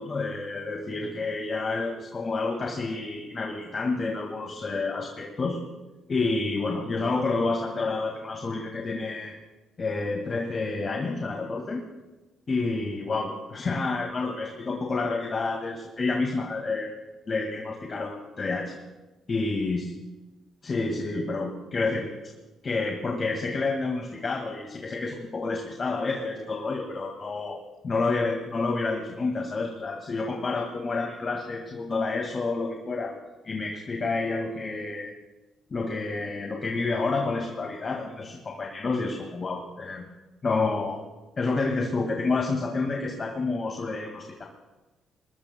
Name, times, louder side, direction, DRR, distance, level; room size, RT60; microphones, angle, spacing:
voice 1, 0.0-5.6 6.1-9.3 9.8-11.8 12.5-16.9 17.3-18.8 19.3-19.9 20.6-22.1 22.6-27.6 27.8-33.2 33.4-35.1 35.7-40.1 40.4-41.0 41.4-44.4, left 3 dB, 40° left, 1 dB, 1.9 m, -29 dB
23.0 x 19.5 x 2.2 m, 1.1 s
cardioid pair, 90°, 0 cm